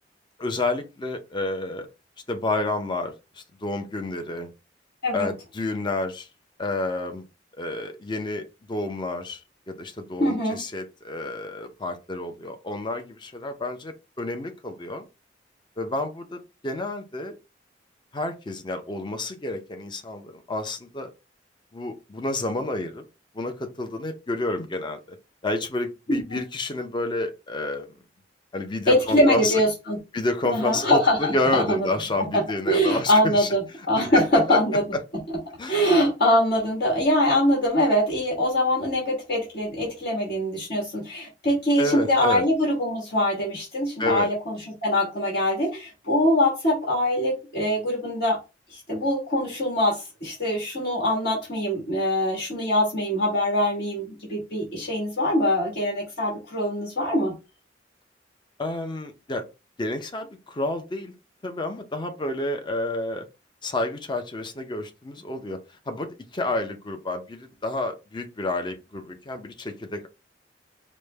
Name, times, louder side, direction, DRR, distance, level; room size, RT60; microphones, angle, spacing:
voice 1, 0.4-1.9 2.3-4.5 5.1-6.3 6.6-7.2 7.6-9.4 9.7-15.1 15.8-17.4 18.1-21.1 21.7-23.0 23.3-25.0 25.4-27.9 28.5-29.6 30.1-30.9 31.2-33.5 34.1-34.6 35.6-35.9 41.8-42.4 44.0-44.3 58.6-59.4 59.8-61.1 61.4-63.3 63.6-65.6 65.9-70.1, left 2 dB, 25° left, 0.5 m, -29 dB
voice 2, 10.2-10.6 26.1-26.2 28.9-30.0 30.4-31.9 32.3-34.8 35.7-48.4 48.7-57.3, left 1 dB, 60° left, 1.6 m, -23 dB
4.9 x 2.1 x 3.3 m
head